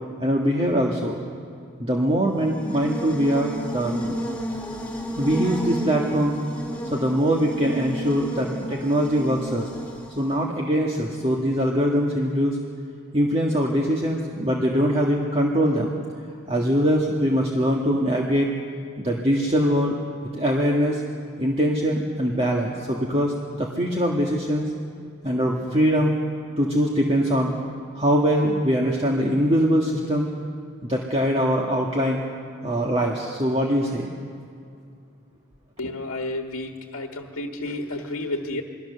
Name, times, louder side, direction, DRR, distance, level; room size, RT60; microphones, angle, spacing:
voice 1, 0.2-1.2 1.8-4.2 5.1-6.3 6.9-9.7 10.2-12.6 13.1-15.9 16.5-18.5 19.0-20.0 20.3-21.0 21.4-24.7 25.2-26.1 26.6-27.5 27.9-30.3 30.8-32.2 32.6-34.1, equal, 25° right, -1 dB, 1.7 m, -22 dB
Buzz, 2.3-10.4, equal, 5° left, 3.7 m, -32 dB
voice 2, 35.8-38.6, left 2 dB, 80° left, 3 dB, 1.5 m, -31 dB
28.0 x 21.0 x 6.8 m, 2.4 s
head